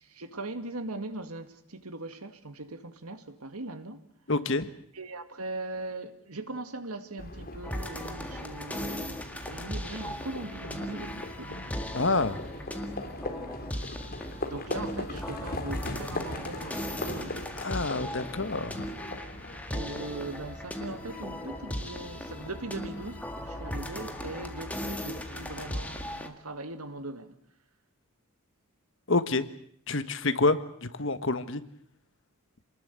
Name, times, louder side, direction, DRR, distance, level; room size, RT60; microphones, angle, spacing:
voice 1, 0.0-4.1 4.9-11.7 14.3-17.5 19.7-27.4, right 2 dB, 90° right, 2.1 m, -40 dB
voice 2, 4.3-4.7 11.9-12.4 17.6-18.9 29.1-29.5 29.9-31.6, left 3 dB, 60° left, 1.5 m, -27 dB
Livestock farm animals working animals, 7.2-26.2, left 1 dB, 40° left, 3.8 m, -40 dB
sound 1, 7.6-26.3, left 1 dB, 5° left, 1.8 m, -38 dB
28.0 x 20.0 x 8.2 m
head